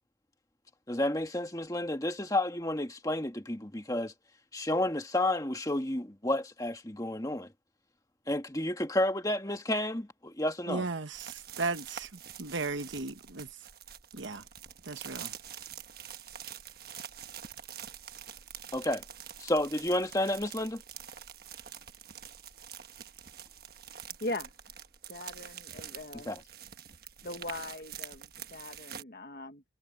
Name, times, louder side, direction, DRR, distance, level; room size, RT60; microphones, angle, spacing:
voice 1, 0.9-4.1 4.5-7.5 8.3-10.8 18.7-19.0 19.4-20.8 26.2-26.4, left 1 dB, 20° left, 1.7 m, -31 dB
voice 2, 10.7-13.5 14.1-14.4 14.8-15.3, right 3 dB, 75° right, 1.3 m, -36 dB
sound 1, 11.1-29.0, right 9 dB, 50° right, 1.3 m, -46 dB
voice 3, 24.0-24.5 25.1-26.3 27.2-29.6, left 2 dB, 50° left, 1.2 m, -40 dB
head